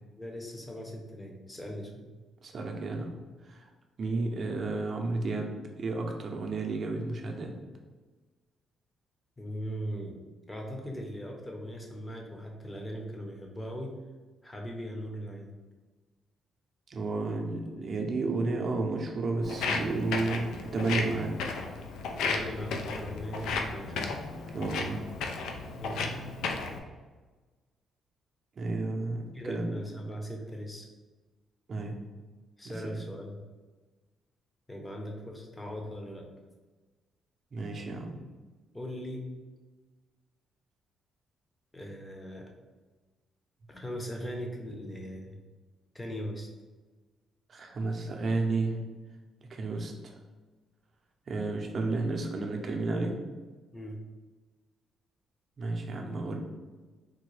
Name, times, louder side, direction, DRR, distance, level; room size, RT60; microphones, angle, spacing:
voice 1, 0.2-2.1 9.4-10.2 10.5-13.9 14.4-15.5 22.2-24.2 25.8-26.0 29.3-30.9 32.6-33.4 34.7-36.3 38.7-39.3 41.7-42.5 43.7-45.4 45.9-46.5 53.7-54.0, equal, 15° left, 1 dB, 0.7 m, -39 dB
voice 2, 2.4-3.2 3.5-3.7 4.0-7.5 16.9-21.3 24.5-25.0 28.6-29.7 31.7-32.0 32.6-33.0 37.5-38.2 47.5-48.8 49.4-50.1 51.3-53.1 55.6-56.4, right 3 dB, 50° right, 2 dB, 0.6 m, -32 dB
Walk footsteps, 19.4-26.8, left 4 dB, 85° left, 0.4 m, -34 dB
3.7 x 2.2 x 3.1 m, 1.3 s
cardioid pair, 90°, 0 cm